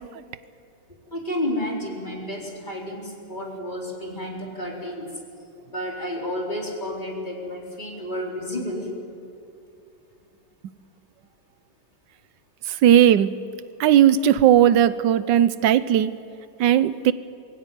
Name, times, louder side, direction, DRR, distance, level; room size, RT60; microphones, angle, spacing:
voice 1, 1.1-5.1 5.7-8.9, left 1 dB, 25° left, -2 dB, 4.3 m, -31 dB
voice 2, 12.8-13.4 13.8-16.1 16.6-17.1, right 10 dB, 90° right, 15 dB, 1.4 m, -17 dB
22.5 x 16.5 x 9.4 m, 2.7 s
omnidirectional pair, 1.9 m